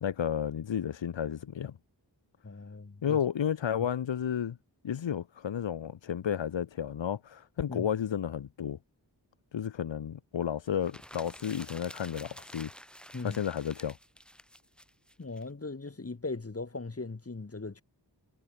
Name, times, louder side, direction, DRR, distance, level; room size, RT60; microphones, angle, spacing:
voice 1, 0.0-1.7 3.0-4.6 4.8-8.8 9.5-12.7 13.2-14.0, left 9 dB, 90° left, 0.7 m, -32 dB
voice 2, 2.4-3.2 7.7-7.9 13.1-13.4 15.2-17.8, left 3 dB, 30° left, 1.1 m, -39 dB
sound 1, 10.7-15.4, equal, ahead, 4.9 m, -49 dB
wide cardioid pair, 45°, 44 cm